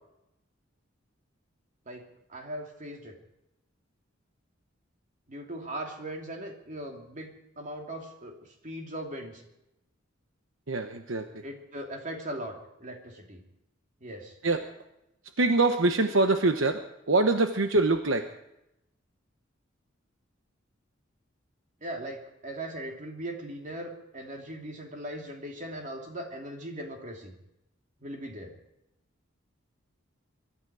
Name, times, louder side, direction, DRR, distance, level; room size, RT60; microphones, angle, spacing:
voice 1, 2.3-3.2 5.3-8.4 8.6-9.4 11.4-12.5 12.8-13.4 14.0-14.4 21.8-27.3 28.0-28.5, right 1 dB, 40° right, 2 dB, 2.9 m, -39 dB
voice 2, 10.7-11.2 14.4-14.6 15.4-18.3, right 2 dB, 75° right, 7 dB, 1.0 m, -24 dB
23.0 x 12.5 x 4.8 m, 0.84 s
head